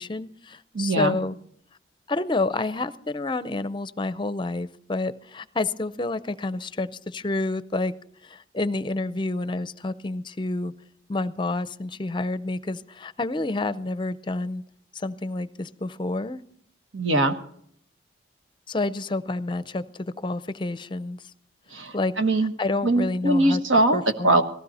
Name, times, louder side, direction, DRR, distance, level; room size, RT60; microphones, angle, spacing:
voice 1, 0.0-1.3 2.1-7.9 8.2-10.7 11.1-14.6 14.9-16.4 18.7-21.2 21.9-22.1 22.6-23.6 23.9-24.4, left 2 dB, 25° left, 14 dB, 0.5 m, -29 dB
voice 2, 0.7-1.2 16.9-17.3 21.7-22.5 22.8-24.4, right 2 dB, 85° right, 7 dB, 1.4 m, -22 dB
18.0 x 15.5 x 4.2 m, 0.67 s
head